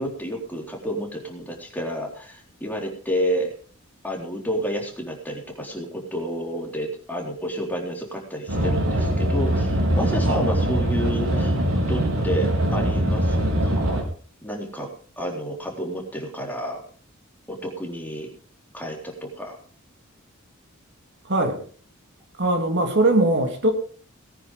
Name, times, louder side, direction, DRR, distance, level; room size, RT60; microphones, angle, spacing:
voice 1, 0.0-3.5 4.0-11.6 11.9-14.0 14.4-14.9 15.2-16.8 17.5-18.3 18.7-19.6, equal, 10° left, 0 dB, 3.8 m, -30 dB
sound 1, 8.5-14.0, right 1 dB, 85° right, 4.7 m, -22 dB
voice 2, 21.2-21.6 22.4-23.7, right 2 dB, 55° right, 4 dB, 3.0 m, -21 dB
19.0 x 9.8 x 5.2 m, 0.42 s
head